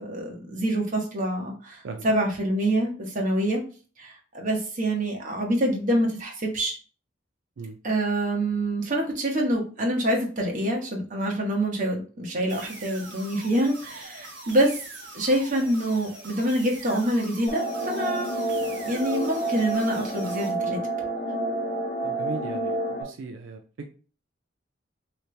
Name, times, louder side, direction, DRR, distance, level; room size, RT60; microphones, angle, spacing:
voice 1, 0.0-3.6 4.0-6.8 7.8-14.8 15.1-20.8, right 1 dB, 45° right, 0 dB, 1.1 m, -26 dB
sound 1, 12.5-20.5, right 2 dB, 70° right, 0.8 m, -43 dB
sound 2, 17.5-23.0, right 2 dB, 50° left, 0.8 m, -29 dB
voice 2, 22.0-23.9, right 3 dB, 90° right, 4 dB, 0.4 m, -38 dB
3.1 x 2.9 x 3.2 m, 0.38 s
head